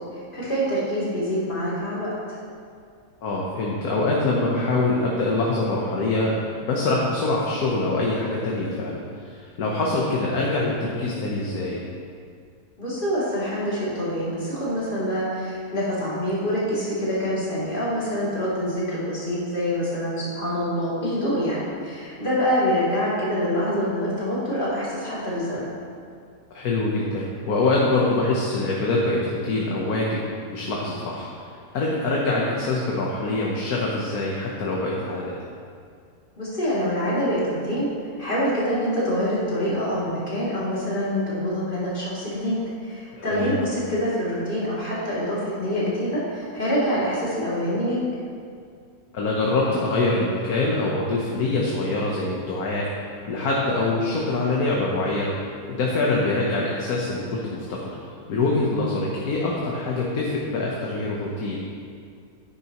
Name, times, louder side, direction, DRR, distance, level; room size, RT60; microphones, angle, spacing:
voice 1, 0.3-2.1 12.8-25.7 36.4-37.9 38.2-48.0, equal, 35° left, -9 dB, 2.9 m, -25 dB
voice 2, 3.2-6.3 6.6-11.8 26.5-30.2 30.5-31.5 31.7-35.4 43.1-43.5 49.1-52.9 53.2-55.3 55.7-58.0 58.3-61.6, left 2 dB, 90° left, -3 dB, 1.5 m, -24 dB
10.0 x 9.5 x 3.0 m, 2.2 s
omnidirectional pair, 1.5 m